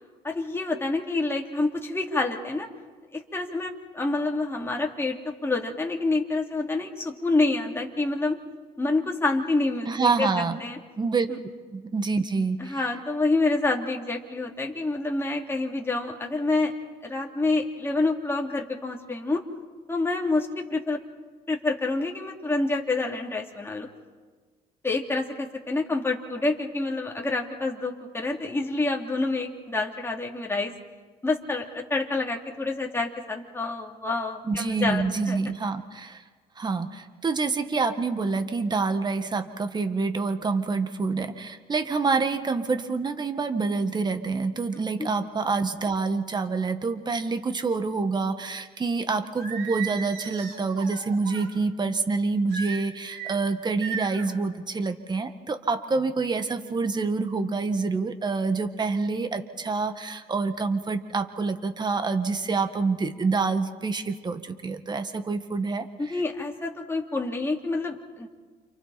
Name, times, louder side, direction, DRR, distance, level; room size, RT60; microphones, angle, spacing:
voice 1, 0.2-2.7 3.1-8.4 8.8-10.3 10.6-10.8 12.6-16.7 17.0-19.4 19.9-21.0 21.5-23.9 24.8-30.7 31.2-35.4 44.7-45.1 66.0-68.3, left 3 dB, 15° left, 0 dB, 3.1 m, -27 dB
voice 2, 9.9-10.6 11.0-11.3 11.7-12.8 34.5-36.2 36.6-65.9 66.1-66.2, right 4 dB, 25° right, 8 dB, 1.8 m, -27 dB
Singing, 49.3-51.5 52.5-53.3 53.8-54.3, right 7 dB, 90° right, 6.5 m, -36 dB
30.0 x 28.0 x 4.4 m, 1.5 s
cardioid pair, 110°, 17 cm